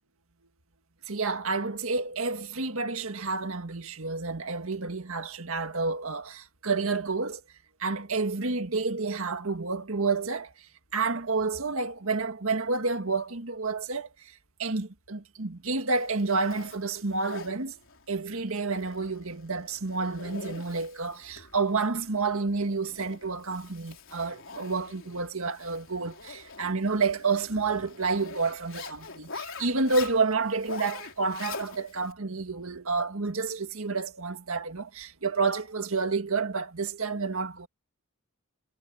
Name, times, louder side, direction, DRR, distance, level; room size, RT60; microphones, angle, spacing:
voice 1, 1.1-7.4 7.8-10.5 10.9-14.1 14.6-17.8 18.1-37.7, right 4 dB, 70° right, 1.8 m, -29 dB
Zipper (clothing), 15.9-32.1, left 4 dB, 60° left, 4.4 m, -45 dB
head